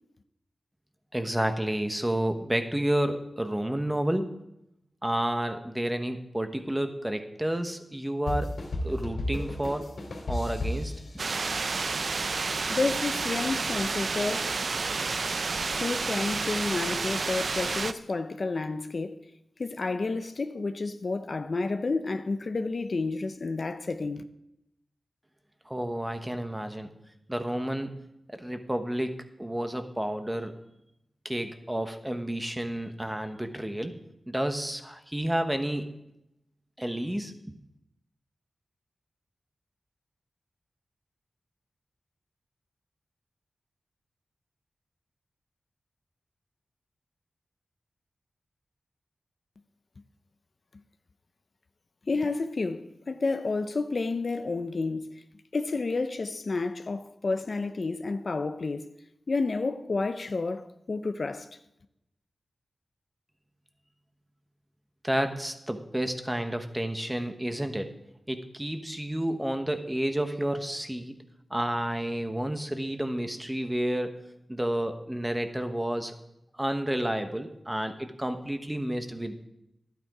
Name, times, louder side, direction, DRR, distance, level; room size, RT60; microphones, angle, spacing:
voice 1, 1.1-4.3 5.0-8.6 8.8-9.9 10.3-10.9 25.7-26.9 27.3-28.0 28.4-30.5 31.2-34.0 34.3-35.9 36.8-37.5 65.0-67.9 68.3-71.2 71.5-74.1 74.5-76.1 76.5-79.4, right 1 dB, 10° right, 1.1 m, -30 dB
sound 1, 8.3-11.8, left 1 dB, 80° left, 2.7 m, -33 dB
sound 2, 11.2-17.9, right 4 dB, 60° right, 0.5 m, -30 dB
voice 2, 12.7-14.5 15.8-19.2 19.6-24.2 52.1-55.1 55.5-58.9 59.3-61.5, left 3 dB, 55° left, 0.6 m, -30 dB
11.5 x 9.3 x 4.8 m
wide cardioid pair, 85°, 0 cm